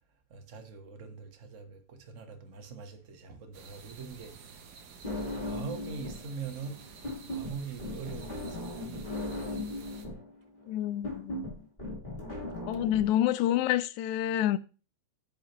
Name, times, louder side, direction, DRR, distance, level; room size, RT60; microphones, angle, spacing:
voice 1, 0.3-4.6 5.0-7.0 7.3-9.7, right 5 dB, 50° right, 0.9 m, -43 dB
sound 1, 3.5-10.1, right 6 dB, 70° right, 0.9 m, -51 dB
sound 2, 5.0-6.3 6.6-13.0, left 1 dB, 15° left, 3.7 m, -37 dB
voice 2, 10.7-11.6 12.7-14.6, left 12 dB, 85° left, 2.0 m, -28 dB
10.5 x 7.5 x 3.0 m
omnidirectional pair, 3.3 m